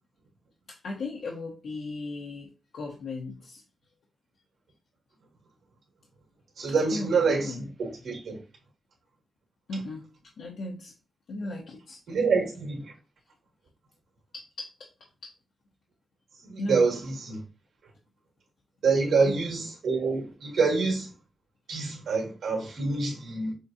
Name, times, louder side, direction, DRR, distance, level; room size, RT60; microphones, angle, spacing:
voice 1, 0.7-3.6 6.9-7.6 9.7-10.1 10.4-10.9 11.3-12.0 14.3-14.7 15.2-15.3 16.6-16.8 19.0-19.3, left 2 dB, 85° left, 0.9 m, -36 dB
voice 2, 6.6-8.4 12.1-12.9 16.4-17.4 18.8-21.1 21.7-23.5, right 4 dB, 85° right, 1.9 m, -26 dB
6.5 x 2.3 x 2.7 m
wide cardioid pair, 125°, 0 cm